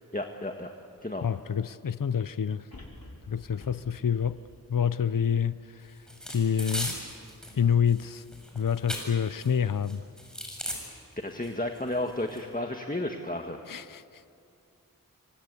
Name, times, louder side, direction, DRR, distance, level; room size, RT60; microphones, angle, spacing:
voice 1, 0.1-0.7 1.0-1.3 11.2-13.6, left 1 dB, 25° left, 1.6 m, -32 dB
sound 1, 1.0-1.1 2.7-6.0 6.5-6.6, left 1 dB, 90° left, 4.1 m, -50 dB
voice 2, 1.2-2.7 3.3-4.4 4.7-5.9 6.3-7.0 7.6-8.2 8.5-10.1 13.7-14.0, left 7 dB, 70° left, 0.7 m, -27 dB
sound 2, 6.1-7.5 7.9-9.5 9.8-10.8 11.4-11.5 11.8-12.4, equal, ahead, 7.3 m, -37 dB
27.5 x 24.5 x 8.4 m
wide cardioid pair, 55°, 34 cm